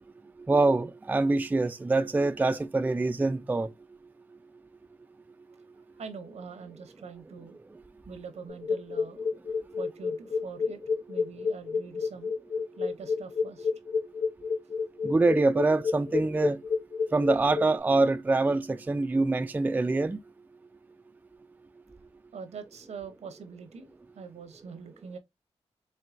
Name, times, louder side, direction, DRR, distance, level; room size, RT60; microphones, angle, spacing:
voice 1, 0.5-3.7 15.0-16.6 17.1-20.2, right 3 dB, 15° right, 0.3 m, -25 dB
voice 2, 5.9-7.6 8.1-9.2 9.8-10.8 11.1-12.3 12.8-13.7 22.3-23.9 24.1-25.2, right 5 dB, 75° right, 0.8 m, -43 dB
sound 1, 8.5-17.7, left 5 dB, 80° left, 0.8 m, -29 dB
4.5 x 3.1 x 2.5 m
wide cardioid pair, 95°, 11 cm